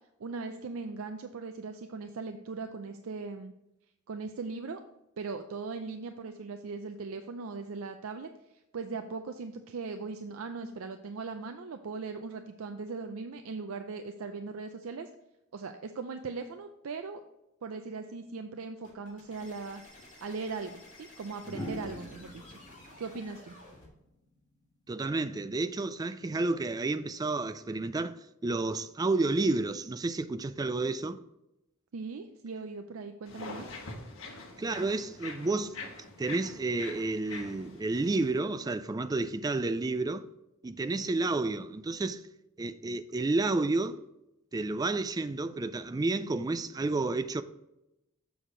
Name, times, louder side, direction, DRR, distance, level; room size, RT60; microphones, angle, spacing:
voice 1, 0.2-3.5 4.1-4.8 5.2-8.3 8.7-15.1 15.5-17.2 17.6-19.8 20.2-22.6 23.0-23.6 31.9-33.7, right 4 dB, 85° right, 0.5 m, -39 dB
sound 1, 18.8-23.9, left 2 dB, 35° left, 2.6 m, -53 dB
sound 2, 19.9-20.1 21.4-24.5 26.0-26.3, equal, 20° left, 1.6 m, -44 dB
voice 2, 24.9-28.2 28.4-31.2 34.6-35.8 36.2-40.3 40.6-42.2 42.6-44.0 44.5-47.4, right 3 dB, 20° right, 0.3 m, -30 dB
sound 3, 33.2-38.4, left 3 dB, 75° left, 1.3 m, -44 dB
7.0 x 6.4 x 3.8 m
head